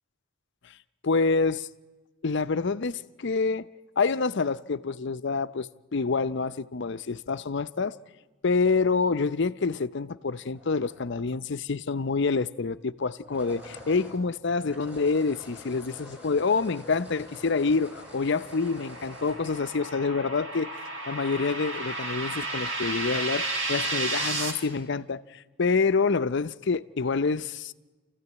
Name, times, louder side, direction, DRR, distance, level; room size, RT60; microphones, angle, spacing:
voice 1, 1.0-1.7 2.2-3.7 4.0-8.0 8.4-20.7 21.1-27.7, left 4 dB, 60° left, 0.6 m, -27 dB
sound 1, 10.5-11.6 13.1-20.6, left 1 dB, 5° right, 4.7 m, -47 dB
sound 2, 17.7-24.5, right 2 dB, 70° right, 3.6 m, -33 dB
28.0 x 14.5 x 9.5 m
head